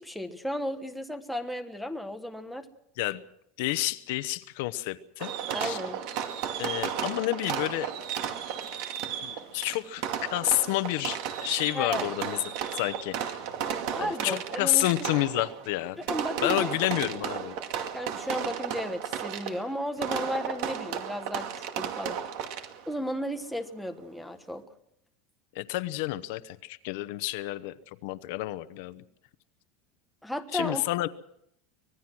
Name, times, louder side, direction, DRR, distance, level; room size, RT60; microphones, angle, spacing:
voice 1, 0.0-2.7 5.5-6.0 11.7-12.1 13.6-14.8 16.0-16.8 17.9-21.5 21.8-22.2 22.9-24.6 30.2-30.9, left 1 dB, ahead, 4 dB, 1.2 m, -34 dB
voice 2, 3.6-5.3 5.6-5.8 6.6-7.9 9.2-10.0 10.3-13.4 14.0-16.0 16.4-17.5 25.5-27.7 28.0-29.0 30.5-31.1, left 17 dB, 60° left, 14 dB, 0.9 m, -29 dB
Fireworks, 5.2-23.0, right 9 dB, 50° right, 2.2 m, -34 dB
25.0 x 19.5 x 6.1 m, 0.75 s
supercardioid pair, 175°, 0 cm